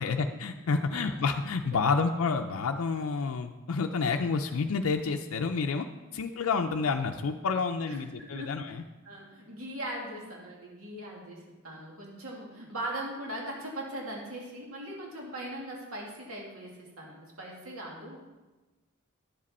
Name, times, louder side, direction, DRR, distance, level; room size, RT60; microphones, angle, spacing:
voice 1, 0.0-5.8 6.1-8.8, left 4 dB, 70° left, 4 dB, 0.5 m, -29 dB
voice 2, 0.7-1.2 1.9-2.0 6.1-6.3 7.9-8.5 9.0-18.2, right 1 dB, 75° right, -2 dB, 2.1 m, -40 dB
10.0 x 7.5 x 4.2 m, 1.1 s
head